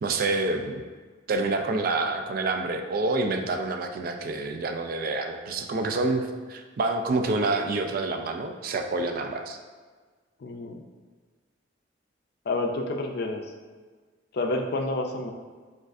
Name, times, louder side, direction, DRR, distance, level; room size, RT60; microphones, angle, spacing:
voice 1, 0.0-0.8 1.3-9.6, right 3 dB, 50° right, 5 dB, 0.3 m, -27 dB
voice 2, 10.4-10.9 12.5-13.5 14.3-15.3, left 2 dB, 55° left, 3 dB, 0.4 m, -29 dB
6.2 x 2.4 x 2.5 m, 1.5 s
head